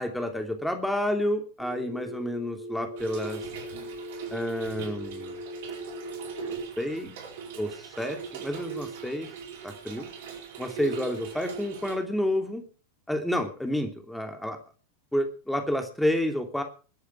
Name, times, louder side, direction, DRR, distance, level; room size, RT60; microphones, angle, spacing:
voice 1, 0.0-3.4 4.3-5.4 6.4-7.2 7.6-9.3 9.6-10.1 10.6-12.7 13.1-14.6 15.1-16.6, left 1 dB, 5° left, 5 dB, 2.9 m, -30 dB
Telephone, 1.6-6.6, equal, 35° right, 6.6 m, -40 dB
Trickle dribble / Fill (with liquid), 3.0-12.0, right 7 dB, 55° right, 4.6 m, -40 dB
21.5 x 10.5 x 4.7 m, 0.37 s
figure-of-eight pair, 90°, 0 cm